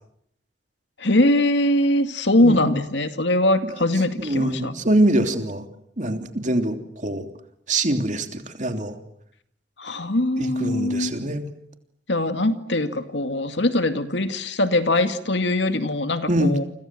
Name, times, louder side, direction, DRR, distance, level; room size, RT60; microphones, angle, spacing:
voice 1, 1.0-4.7 9.8-11.1 12.1-16.6, left 1 dB, 75° left, 9 dB, 2.2 m, -22 dB
voice 2, 4.2-5.6 6.0-7.3 7.7-8.9 10.4-11.4 16.3-16.5, right 1 dB, 45° right, 6 dB, 3.2 m, -23 dB
29.5 x 25.5 x 7.8 m, 0.72 s
head